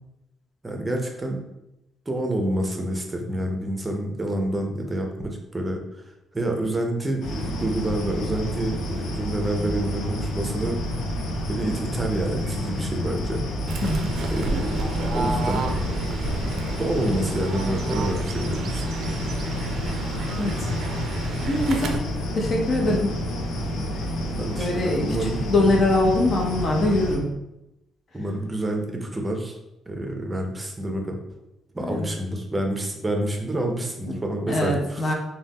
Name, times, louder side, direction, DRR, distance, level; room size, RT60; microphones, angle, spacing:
voice 1, 0.6-1.4 2.1-6.0 6.3-10.8 11.5-13.4 14.3-15.7 16.8-18.8 24.4-25.4 28.1-29.6 29.9-31.2 31.7-35.1, right 1 dB, 20° right, 2 dB, 0.6 m, -28 dB
sound 1, 7.2-27.2, equal, 85° left, 0.5 m, -29 dB
Fowl / Bird, 13.7-22.0, right 2 dB, 70° right, 0.4 m, -31 dB
voice 2, 13.8-14.1 20.4-20.7 21.5-22.0 22.3-23.1 24.5-27.3 31.8-32.1 34.1-35.1, left 2 dB, 50° left, 0 dB, 0.7 m, -23 dB
2.6 x 2.2 x 3.4 m, 0.89 s
cardioid pair, 90°, 0 cm